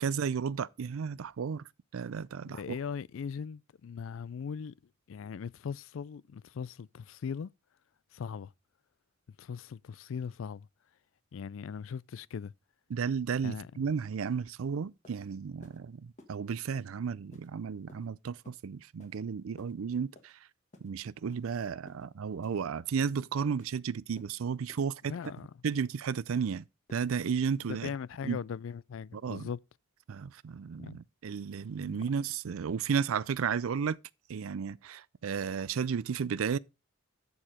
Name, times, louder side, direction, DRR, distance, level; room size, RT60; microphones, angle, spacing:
voice 1, 0.0-1.6 1.9-2.8 12.9-20.3 20.8-25.1 25.6-26.6 26.9-27.9 28.2-28.4 29.1-29.5 30.1-34.0 34.3-36.6, right 6 dB, 90° right, 0.4 m, -33 dB
voice 2, 2.4-4.7 5.1-7.5 8.1-8.5 9.4-10.7 11.3-12.5 13.4-13.9 25.1-25.5 27.8-29.6 30.8-31.0 31.8-32.1, left 6 dB, 70° left, 0.4 m, -39 dB
sound 1, 14.5-14.6 15.0-15.2 15.6-15.8 16.2-16.3 16.8-16.9 17.3-17.5 17.9-18.1 18.4-18.6 19.0-19.2 19.6-19.7 20.2-20.3 20.7-20.9 21.3-21.5 21.9-22.0 22.4-22.6 23.0-23.2 23.6-23.7 24.2-24.3 24.7-24.8 25.2-25.4 25.8-26.0 26.3-26.5 26.9-27.0, left 1 dB, 35° left, 1.9 m, -56 dB
11.5 x 4.8 x 4.9 m
head